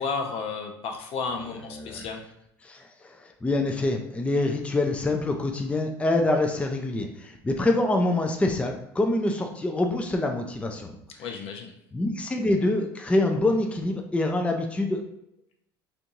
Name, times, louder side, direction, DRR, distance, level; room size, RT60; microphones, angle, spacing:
voice 1, 0.0-2.2 11.2-11.7, left 5 dB, 55° left, 3 dB, 0.7 m, -32 dB
voice 2, 1.7-2.1 2.6-11.0 11.9-15.0, left 2 dB, 10° left, 3 dB, 0.5 m, -26 dB
4.4 x 2.6 x 2.6 m, 0.79 s
hypercardioid pair, 75°, 12 cm